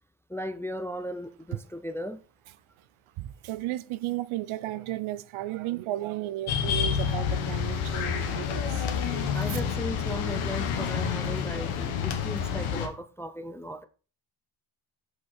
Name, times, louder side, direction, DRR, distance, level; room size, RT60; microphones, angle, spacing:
voice 1, 0.3-2.2 9.3-13.8, equal, 5° left, 0.3 m, -36 dB
voice 2, 3.2-9.6, right 15 dB, 75° right, 0.7 m, -34 dB
sound 1, 6.5-12.9, left 7 dB, 90° left, 1.4 m, -29 dB
sound 2, 7.5-12.4, left 8 dB, 70° left, 1.5 m, -46 dB
6.6 x 5.3 x 4.3 m
cardioid pair, 110°, 49 cm